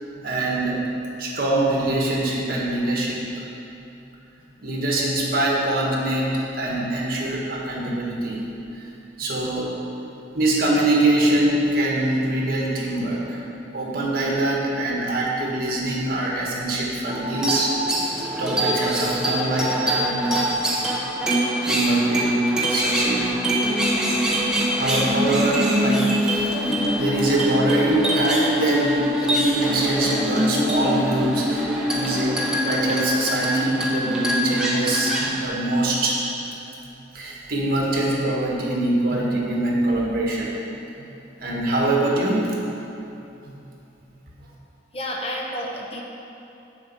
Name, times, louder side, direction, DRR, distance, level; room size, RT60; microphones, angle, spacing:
voice 1, 0.2-0.8 1.2-3.3 4.6-6.3 6.6-8.4 8.7-8.8 9.2-9.7 10.3-13.4 13.7-17.7 18.4-20.5 20.8-20.9 21.6-24.1 24.8-36.2 37.1-40.5 41.4-42.5 43.4-43.6 44.4-44.5, right 1 dB, 50° right, -3 dB, 1.6 m, -24 dB
sound 1, 17.1-35.4, equal, 5° right, 1.0 m, -23 dB
voice 2, 44.9-46.0, equal, 30° left, -1 dB, 0.9 m, -30 dB
7.1 x 5.4 x 7.4 m, 2.9 s
head